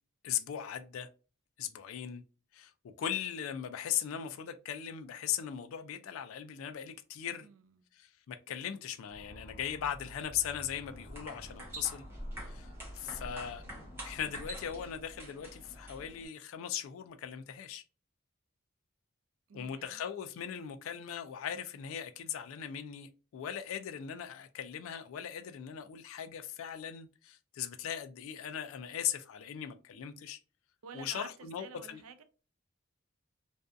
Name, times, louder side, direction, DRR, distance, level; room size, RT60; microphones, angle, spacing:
voice 1, 0.2-1.1 1.6-2.2 2.5-7.5 7.9-12.1 12.4-13.6 14.0-17.8 19.5-30.4 30.9-32.0, left 9 dB, 80° left, 0.3 m, -39 dB
Motor vehicle (road) / Siren, 9.1-14.7, equal, 25° left, 0.7 m, -52 dB
sound 1, 10.9-16.3, equal, 10° right, 0.7 m, -46 dB
voice 2, 19.5-20.0 30.8-32.2, right 5 dB, 85° right, 0.4 m, -50 dB
2.5 x 2.2 x 2.4 m
head